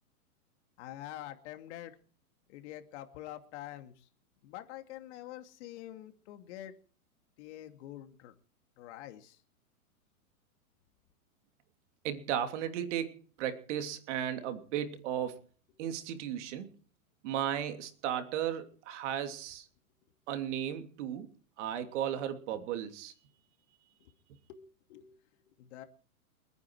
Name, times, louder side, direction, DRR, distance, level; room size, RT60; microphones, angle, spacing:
voice 1, 0.8-2.0 2.5-4.1 4.4-6.7 7.4-8.3 8.8-9.4 24.0-24.1 24.5-24.6 24.9-25.8, left 13 dB, 50° left, 7 dB, 2.6 m, -46 dB
voice 2, 12.0-15.4 15.8-16.7 17.2-19.7 20.3-21.3 21.6-23.1, right 10 dB, 55° right, 8 dB, 3.0 m, -35 dB
29.5 x 9.9 x 4.8 m, 0.41 s
hypercardioid pair, 125°, 44 cm